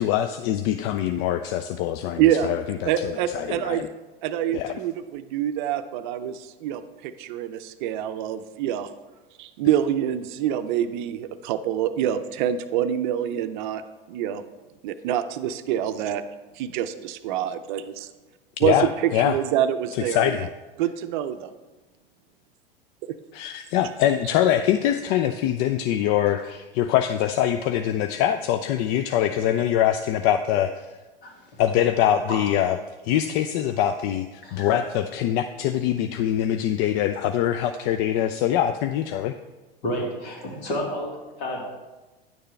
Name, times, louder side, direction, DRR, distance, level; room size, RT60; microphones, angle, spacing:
voice 1, 0.0-3.9 4.5-4.7 18.6-19.4 19.9-20.5 23.3-30.9 31.6-32.8 33.0-39.3, left 11 dB, 40° left, 8 dB, 0.4 m, -23 dB
voice 2, 2.2-2.5 2.8-3.9 4.2-8.9 9.4-13.8 14.1-14.4 14.8-16.2 16.5-18.1 18.6-20.5 20.8-21.5 23.1-23.2, right 10 dB, 55° right, 10 dB, 0.6 m, -26 dB
voice 3, 31.2-31.6 32.3-32.4 34.4-34.7 39.8-41.7, equal, 60° left, -1 dB, 2.4 m, -31 dB
10.0 x 6.6 x 3.3 m, 1.2 s
hypercardioid pair, 95°, 30 cm